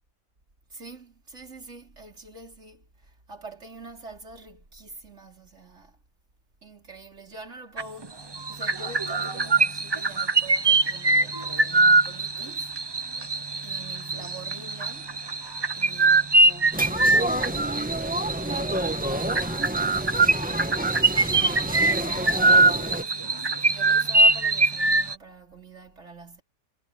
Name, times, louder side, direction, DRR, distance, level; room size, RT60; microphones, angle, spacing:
voice 1, 0.7-6.0 6.6-12.7 13.6-15.1 15.8-18.1 18.4-19.6 19.8-21.0 21.5-26.4, right 3 dB, 45° right, 4.9 m, -45 dB
sound 1, 7.8-8.1 8.3-25.1, right 3 dB, 30° right, 0.5 m, -23 dB
sound 2, 16.7-23.0, right 1 dB, 5° right, 1.7 m, -30 dB
omnidirectional pair, 1.7 m